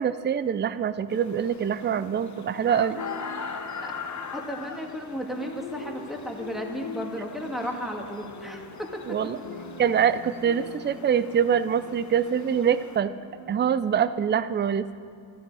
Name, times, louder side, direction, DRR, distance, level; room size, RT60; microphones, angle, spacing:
voice 1, 0.0-3.0 9.0-9.4 9.8-13.1 13.5-14.9, right 8 dB, 25° right, 14 dB, 0.4 m, -24 dB
sound 1, 1.1-13.0, left 5 dB, 40° left, 0.8 m, -41 dB
sound 2, 1.4-1.5 2.9-14.1, left 3 dB, 60° left, 2.0 m, -44 dB
voice 2, 4.3-8.9, equal, ahead, 0 dB, 1.8 m, -34 dB
13.0 x 12.0 x 4.8 m, 2.3 s
cardioid pair, 80°, 46 cm